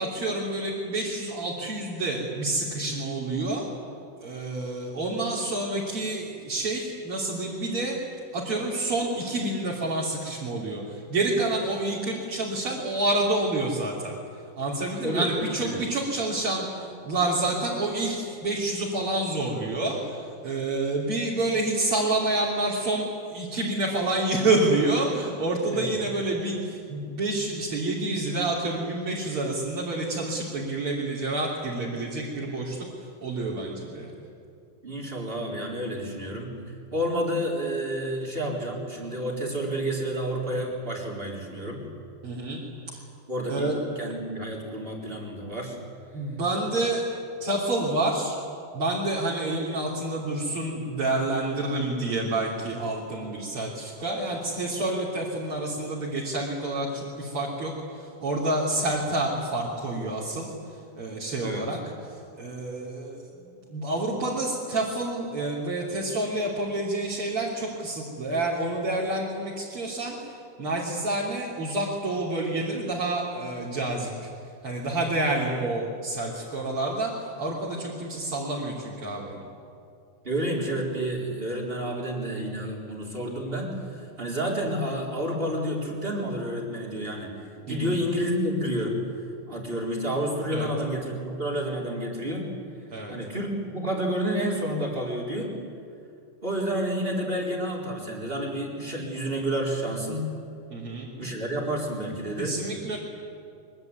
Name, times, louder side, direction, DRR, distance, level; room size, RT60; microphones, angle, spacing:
voice 1, 0.0-3.7 4.2-8.0 8.3-14.2 14.6-34.1 42.2-42.6 42.9-43.0 43.5-43.8 46.1-47.0 47.4-48.3 48.7-60.5 60.9-61.8 62.1-74.3 74.6-79.4 87.7-88.0 90.5-90.7 92.9-93.1 100.7-101.1 102.4-103.0, right 2 dB, 35° right, -5 dB, 3.6 m, -28 dB
voice 2, 15.0-15.8 25.7-25.9 34.8-36.6 36.9-41.9 43.3-45.8 61.4-61.7 80.2-87.3 87.7-89.0 89.5-92.5 93.1-95.5 96.4-100.3 101.1-102.6, equal, 15° right, 0 dB, 3.6 m, -30 dB
23.5 x 23.5 x 9.5 m, 2.4 s
omnidirectional pair, 5.1 m